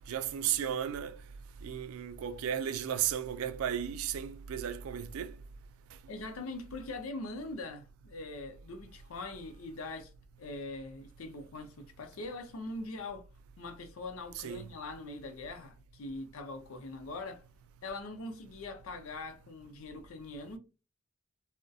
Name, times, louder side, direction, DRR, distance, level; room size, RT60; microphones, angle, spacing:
voice 1, 0.1-1.2 1.6-5.3 14.4-14.7, right 9 dB, 85° right, 0.3 m, -34 dB
voice 2, 6.1-10.1 10.4-13.3 13.6-17.4 17.8-20.6, left 2 dB, 90° left, 0.6 m, -42 dB
2.6 x 2.1 x 2.3 m
head